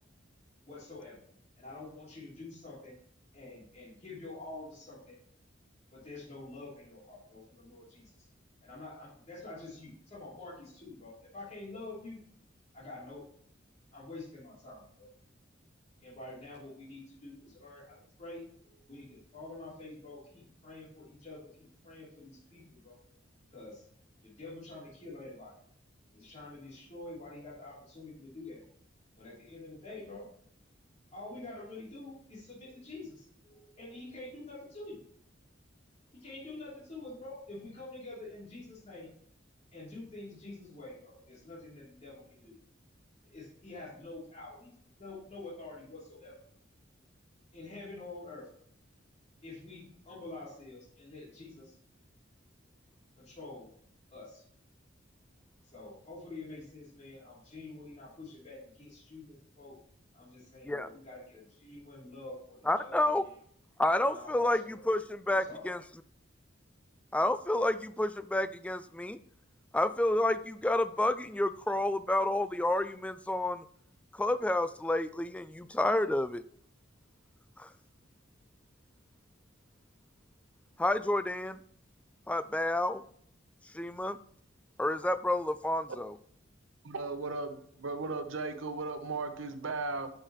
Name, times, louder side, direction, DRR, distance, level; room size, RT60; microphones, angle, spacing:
voice 1, 0.6-1.2 1.6-2.9 3.3-5.2 5.9-8.3 8.6-12.2 12.7-13.3 13.9-15.1 16.0-23.0 23.5-23.8 24.2-25.5 26.1-28.6 29.2-30.3 31.1-35.0 36.1-39.1 39.7-42.6 43.2-46.3 47.5-48.5 49.4-51.7 53.2-53.7 54.1-54.4 55.6-59.8 60.1-63.3 64.0-64.8 65.3-65.6, left 2 dB, 35° left, 3.2 m, -47 dB
voice 2, 62.7-63.2 63.8-65.8 67.1-69.2 69.7-73.6 74.1-76.4 77.6-77.7 80.8-81.6 82.3-83.0 83.7-84.2 84.8-86.2, left 1 dB, 5° left, 0.3 m, -29 dB
voice 3, 86.8-90.1, right 3 dB, 90° right, 0.9 m, -36 dB
10.0 x 6.6 x 3.1 m
head